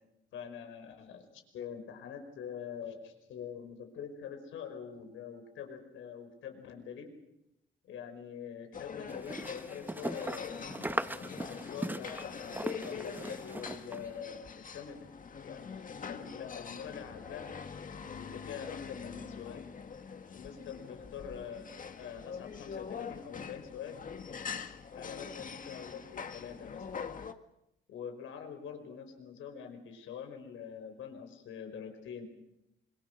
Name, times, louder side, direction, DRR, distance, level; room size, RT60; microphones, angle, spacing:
voice 1, 0.3-1.3 1.5-7.1 7.8-10.6 11.5-15.1 15.4-17.5 18.2-19.7 20.3-24.0 24.9-26.8 27.9-32.2, left 7 dB, 80° left, 5 dB, 5.3 m, -45 dB
sound 1, 8.7-27.3, left 6 dB, 40° left, 1.8 m, -44 dB
sound 2, 9.1-14.1, right 1 dB, 10° right, 0.9 m, -39 dB
26.0 x 23.0 x 6.5 m, 0.86 s
cardioid pair, 90°, 20 cm